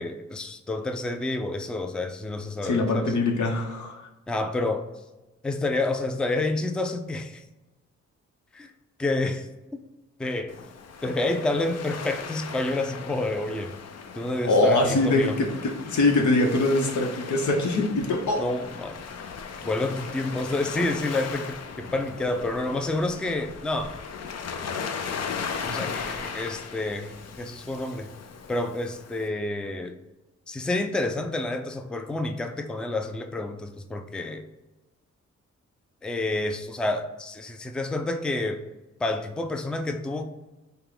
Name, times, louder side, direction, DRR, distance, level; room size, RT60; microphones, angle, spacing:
voice 1, 0.0-3.1 4.3-4.8 5.4-7.4 8.5-8.7 9.0-9.5 10.2-10.5 11.0-13.7 14.1-15.3 18.4-19.0 19.6-24.0 25.6-28.1 28.5-29.9 30.5-34.4 36.0-38.6 39.0-40.2, left 2 dB, 5° left, 6 dB, 0.3 m, -29 dB
voice 2, 2.6-4.1 14.4-18.4, left 2 dB, 85° left, 3 dB, 0.9 m, -23 dB
Waves surf, 10.5-29.3, left 6 dB, 60° left, 0.5 m, -37 dB
5.6 x 2.2 x 3.7 m, 1.1 s
cardioid pair, 90°, 29 cm